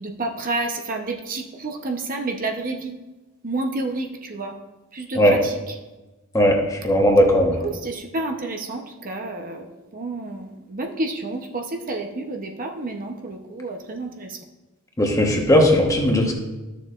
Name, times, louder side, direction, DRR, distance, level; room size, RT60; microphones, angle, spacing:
voice 1, 0.0-2.9 3.4-4.5 5.0-5.6 7.8-9.6 9.9-10.4 10.7-14.3, right 2 dB, 40° right, 2 dB, 0.8 m, -29 dB
voice 2, 6.8-7.6 15.0-16.3, equal, 15° left, 1 dB, 1.1 m, -17 dB
13.0 x 6.8 x 2.5 m, 1.1 s
head